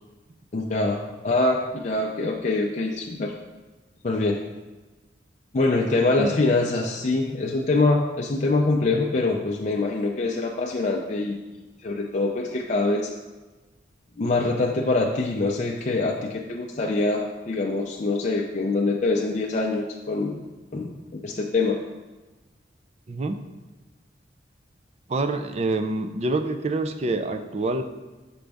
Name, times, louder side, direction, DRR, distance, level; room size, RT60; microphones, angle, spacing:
voice 1, 0.5-3.3 4.0-4.4 5.5-13.1 14.2-20.4 20.7-20.9 21.2-21.8, left 2 dB, 40° left, -1 dB, 0.4 m, -24 dB
voice 2, 23.1-23.4 25.1-27.8, right 2 dB, 35° right, 8 dB, 0.4 m, -26 dB
6.1 x 5.2 x 3.4 m, 1.2 s
head